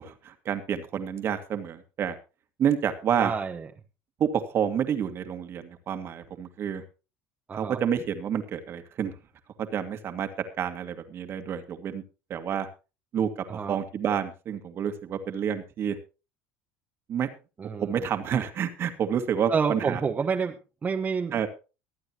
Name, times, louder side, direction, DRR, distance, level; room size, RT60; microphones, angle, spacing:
voice 1, 0.0-2.2 2.6-3.3 4.2-6.8 7.5-9.1 9.6-10.3 10.6-12.0 12.3-12.7 13.1-16.0 17.1-17.3 17.8-20.0 21.3-21.5, right 8 dB, 45° right, 8 dB, 2.0 m, -29 dB
voice 2, 3.2-3.7 7.5-7.8 13.5-13.8 17.6-18.0 19.5-21.5, right 5 dB, 30° right, 2 dB, 1.3 m, -29 dB
24.0 x 8.9 x 3.0 m, 0.31 s
supercardioid pair, 95°, 6 cm